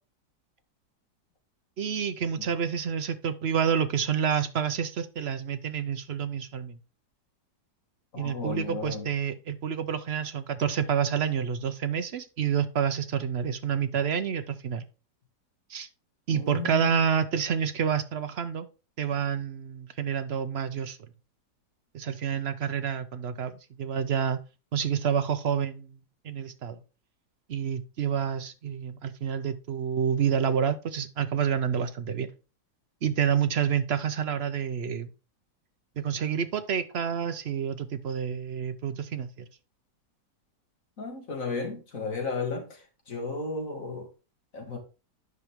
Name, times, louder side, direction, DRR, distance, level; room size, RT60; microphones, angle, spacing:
voice 1, 1.8-6.8 8.2-14.8 15.7-15.9 16.3-18.7 19.0-21.0 21.9-23.5 23.8-24.4 24.7-26.0 26.2-26.8 27.5-32.3 33.0-35.1 36.0-39.5, right 7 dB, 65° right, 0.6 m, -28 dB
voice 2, 8.1-9.1 16.3-17.0 41.0-44.1 44.5-44.8, left 4 dB, 50° left, 2.5 m, -34 dB
9.6 x 5.7 x 3.6 m
omnidirectional pair, 1.8 m